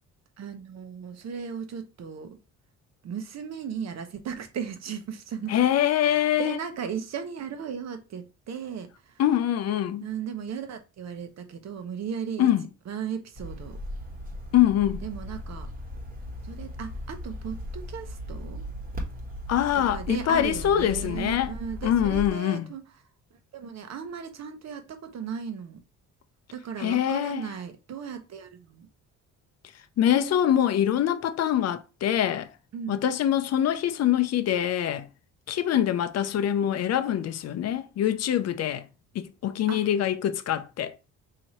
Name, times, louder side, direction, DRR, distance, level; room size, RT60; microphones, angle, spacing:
voice 1, 0.4-2.4 3.0-5.5 6.0-9.2 10.0-12.5 12.9-13.8 15.0-15.7 16.4-18.6 19.7-22.8 23.5-25.8 26.5-28.9 32.7-33.0 39.7-39.9, right 7 dB, 60° right, 0.9 m, -36 dB
voice 2, 5.5-6.6 9.2-10.1 12.4-12.7 14.5-15.0 19.5-21.5 21.8-22.7 26.8-27.5 30.0-32.5 32.9-35.1 35.5-38.9 39.1-41.0, left 10 dB, 55° left, 0.5 m, -24 dB
sound 1, 13.3-22.3, left 1 dB, 30° right, 1.2 m, -37 dB
4.1 x 2.8 x 3.0 m
cardioid pair, 90°, 30 cm